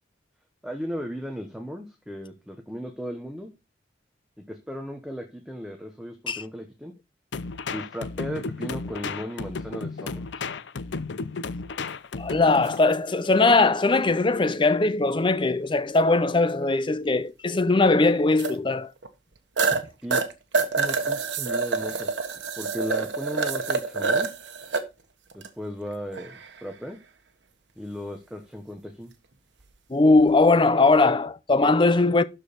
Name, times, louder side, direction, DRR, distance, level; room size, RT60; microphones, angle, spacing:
voice 1, 0.6-3.5 4.5-6.9 7.7-10.5 20.0-20.2 20.8-22.1 22.6-24.3 25.3-27.0 27.8-29.1, equal, 5° right, 1.1 m, -36 dB
sound 1, 7.3-12.8, left 4 dB, 70° left, 0.6 m, -33 dB
voice 2, 12.2-18.9 19.7-19.8 29.9-32.2, left 3 dB, 25° left, 0.6 m, -20 dB
sound 2, 12.6-12.8 15.3-15.4 18.4-18.5 19.0-19.1 19.6-19.8 20.1-24.8 25.3-25.5 26.1-26.6 30.1-30.3, right 4 dB, 70° right, 1.3 m, -27 dB
12.5 x 4.6 x 5.1 m
head